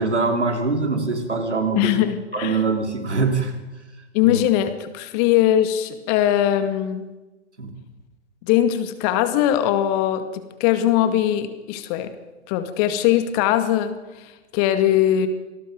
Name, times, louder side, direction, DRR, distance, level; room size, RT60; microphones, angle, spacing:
voice 1, 0.0-2.0 2.3-3.5 4.2-4.4 7.6-7.7, right 3 dB, 80° right, 4 dB, 3.9 m, -23 dB
voice 2, 1.8-2.6 4.1-7.1 8.4-12.1 12.5-15.3, left 11 dB, 35° left, 9 dB, 2.2 m, -21 dB
27.0 x 20.0 x 5.3 m, 1.1 s
figure-of-eight pair, 110°, 34 cm